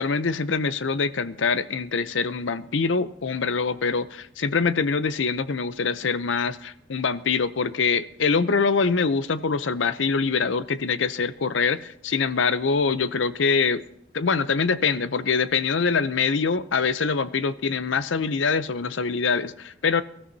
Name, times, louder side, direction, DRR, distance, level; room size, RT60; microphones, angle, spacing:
voice 1, 0.0-13.8 14.1-20.0, left 5 dB, 70° left, 0.6 m, -24 dB
23.0 x 13.5 x 2.8 m
head